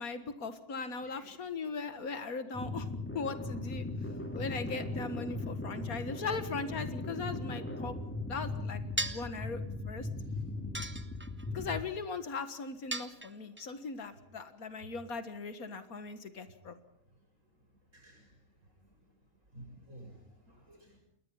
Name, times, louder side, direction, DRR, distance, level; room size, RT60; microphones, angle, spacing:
voice 1, 0.0-2.9 3.1-3.9 4.3-8.0 8.3-9.6 9.9-10.1 11.5-16.8, left 4 dB, 80° left, 10 dB, 2.1 m, -39 dB
Synth Suspense Scary Background Ambient, 2.5-11.9, left 2 dB, 10° left, 2.6 m, -38 dB
sound 1, 9.0-9.4 10.7-11.5 12.9-13.6, right 2 dB, 10° right, 0.8 m, -37 dB
voice 2, 17.9-18.3 18.8-18.9 19.5-21.0, right 1 dB, 60° right, 1 dB, 8.2 m, -53 dB
29.0 x 20.5 x 5.7 m, 0.71 s
omnidirectional pair, 1.5 m